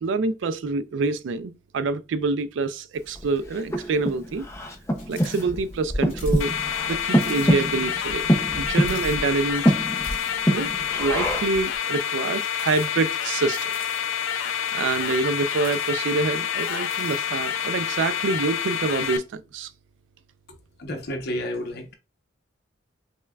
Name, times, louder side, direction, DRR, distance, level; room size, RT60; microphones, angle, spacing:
voice 1, 0.0-4.4 5.1-6.5 6.9-8.3 8.6-9.6 10.5-10.7 11.0-13.7 14.2-19.7, right 3 dB, 65° right, 0.3 m, -26 dB
Breathing, 3.1-11.7, equal, 15° left, 0.4 m, -25 dB
sound 1, 5.0-5.5 5.7-5.8 6.1-6.5 6.8-6.9 7.1-7.5 7.9-8.0 8.8-9.6 10.0-10.3 11.0-11.5 12.3-13.1 13.5-14.2 14.7-16.1 16.6-17.3, left 3 dB, 35° left, 1.7 m, -45 dB
sound 2, 6.4-19.2, left 8 dB, 80° left, 0.4 m, -28 dB
voice 2, 20.5-22.0, left 1 dB, 55° left, 0.8 m, -32 dB
5.4 x 2.2 x 2.3 m
head